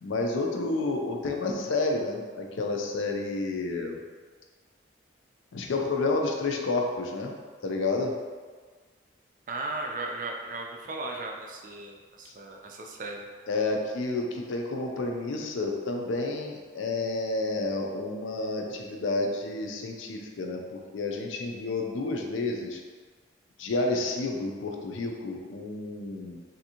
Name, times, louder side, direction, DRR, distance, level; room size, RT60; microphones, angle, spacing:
voice 1, 0.0-4.0 5.5-7.3 7.6-8.1 13.5-22.8 23.6-26.4, left 3 dB, 85° left, 2 dB, 0.4 m, -30 dB
voice 2, 9.5-13.3, right 2 dB, 45° right, 1 dB, 0.3 m, -36 dB
3.4 x 2.6 x 2.8 m, 1.5 s
head